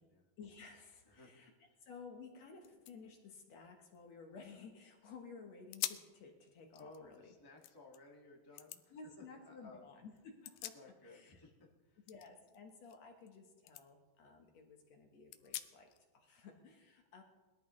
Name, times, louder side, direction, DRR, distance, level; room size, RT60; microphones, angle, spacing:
voice 1, 0.4-1.5 1.9-7.3 8.9-10.7 11.0-11.5 12.1-17.2, left 4 dB, 60° left, 3 dB, 2.0 m, -55 dB
voice 2, 1.0-1.8 6.8-9.9 10.7-12.0, left 3 dB, 35° left, -2 dB, 0.3 m, -58 dB
sound 1, 2.2-2.3 2.6-4.8 5.2-5.3 5.7-6.2 6.6-8.0 8.6-8.8 10.2-11.3 11.6-13.4 13.7-13.8 14.3-14.4 15.3-16.0, left 14 dB, 80° left, 1.9 m, -47 dB
21.0 x 12.5 x 3.1 m, 1.3 s
omnidirectional pair, 4.1 m